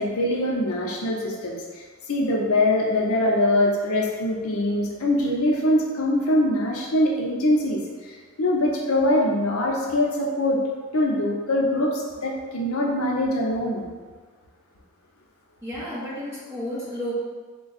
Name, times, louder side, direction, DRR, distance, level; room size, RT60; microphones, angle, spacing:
voice 1, 0.0-10.6 10.9-13.8, left 1 dB, 75° left, -1 dB, 0.6 m, -23 dB
voice 2, 15.6-17.2, equal, 10° right, -10 dB, 1.1 m, -32 dB
3.5 x 2.3 x 4.0 m, 1.5 s
head